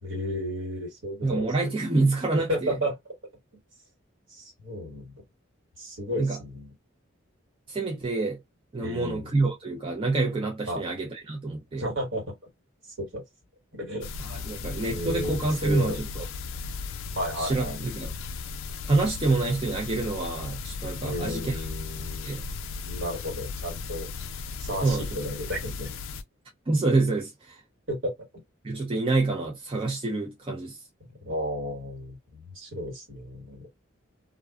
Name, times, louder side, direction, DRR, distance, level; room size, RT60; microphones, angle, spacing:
voice 1, 0.0-1.5 2.5-3.0 4.3-5.2 5.8-6.7 8.8-9.3 10.7-10.8 11.7-12.3 13.0-13.2 13.7-14.1 14.9-16.0 17.1-17.9 21.0-22.3 22.8-24.1 24.6-25.9 27.9-28.1 31.0-33.6, equal, 70° right, 1.5 m, -33 dB
voice 2, 1.2-2.8 6.2-6.4 7.7-8.4 8.7-11.9 14.2-16.2 17.4-18.1 18.9-21.6 22.0-22.4 24.8-25.1 26.7-27.6 28.6-30.8, right 3 dB, 25° right, 0.4 m, -27 dB
sound 1, 14.0-26.2, left 4 dB, 80° left, 0.4 m, -36 dB
2.4 x 2.2 x 2.2 m
head